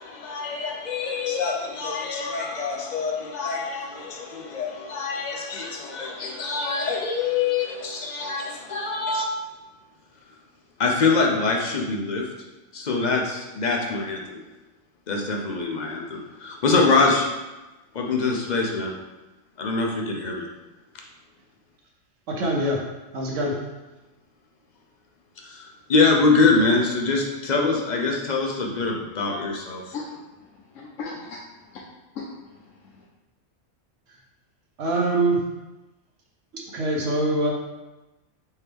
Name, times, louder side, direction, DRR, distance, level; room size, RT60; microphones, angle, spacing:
voice 1, 0.0-9.3 10.8-12.3 12.7-14.4 15.1-17.3 17.9-18.9 19.6-20.5 25.4-29.9, left 4 dB, 45° left, 0 dB, 0.6 m, -24 dB
voice 2, 22.3-22.9 23.1-23.6 34.8-35.5 36.5-37.5, right 2 dB, 70° right, -1 dB, 1.2 m, -24 dB
voice 3, 29.8-31.8 32.1-33.0, left 4 dB, 80° left, -4 dB, 1.0 m, -39 dB
4.5 x 3.4 x 3.4 m, 1.1 s
omnidirectional pair, 1.3 m